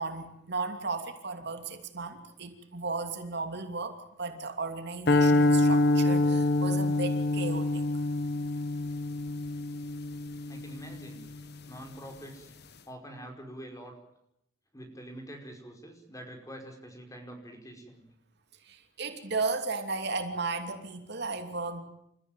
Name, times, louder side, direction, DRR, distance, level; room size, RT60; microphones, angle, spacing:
voice 1, 0.0-7.8 18.7-21.8, right 3 dB, 60° right, 6 dB, 2.9 m, -35 dB
sound 1, 5.1-11.4, left 2 dB, 60° left, 1.5 m, -26 dB
voice 2, 10.5-11.2 11.7-12.5 12.9-13.9 14.7-18.0, right 1 dB, 20° left, 4 dB, 5.2 m, -45 dB
29.0 x 15.0 x 9.1 m, 0.78 s
head